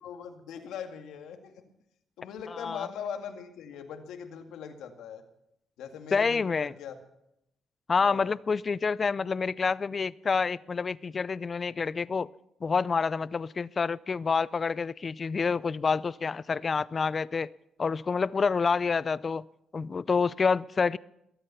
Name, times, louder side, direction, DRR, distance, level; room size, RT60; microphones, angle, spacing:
voice 1, 0.0-1.5 2.2-5.2 5.8-7.0 8.0-8.4, left 7 dB, 85° left, 5 dB, 2.0 m, -40 dB
voice 2, 2.5-2.9 6.1-6.7 7.9-12.3 12.6-17.5 17.8-19.5 19.7-21.0, left 5 dB, 35° left, 20 dB, 0.5 m, -28 dB
22.0 x 9.0 x 6.9 m, 0.80 s
cardioid pair, 90°, 0 cm